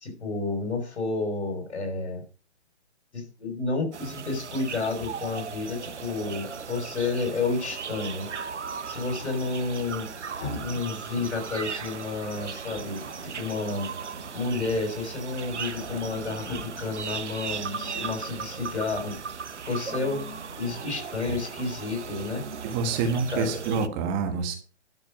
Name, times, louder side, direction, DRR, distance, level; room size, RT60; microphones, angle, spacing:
voice 1, 0.0-2.2 3.1-8.3 8.9-13.9 14.3-19.1 19.7-20.3 20.6-22.4 23.3-23.6, left 3 dB, 70° left, 3 dB, 5.8 m, -31 dB
sound 1, 3.9-23.9, right 6 dB, 80° right, 1.2 m, -37 dB
Growling, 4.7-6.7 9.1-10.9 11.1-12.0 12.6-13.5 14.0-15.0 15.3-15.4 15.6-16.9 17.4-18.2 18.9-19.3 19.7-20.9 21.2-21.5, left 2 dB, 25° left, 3.9 m, -44 dB
voice 2, 22.6-24.6, right 4 dB, 20° right, 6 dB, 1.4 m, -27 dB
11.0 x 6.7 x 5.3 m, 0.36 s
hypercardioid pair, 150°, 34 cm